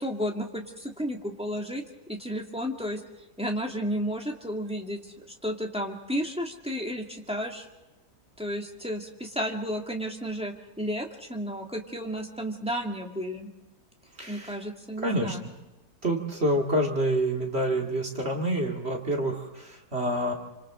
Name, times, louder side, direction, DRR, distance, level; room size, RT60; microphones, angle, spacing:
voice 1, 0.0-3.0 3.4-5.0 5.3-7.7 8.4-13.5 14.3-15.4, equal, 5° right, 1 dB, 2.2 m, -32 dB
voice 2, 14.2-14.6 15.0-15.4 16.0-20.3, right 1 dB, 35° right, 1 dB, 2.6 m, -27 dB
27.5 x 26.0 x 3.8 m, 1.1 s
omnidirectional pair, 1.9 m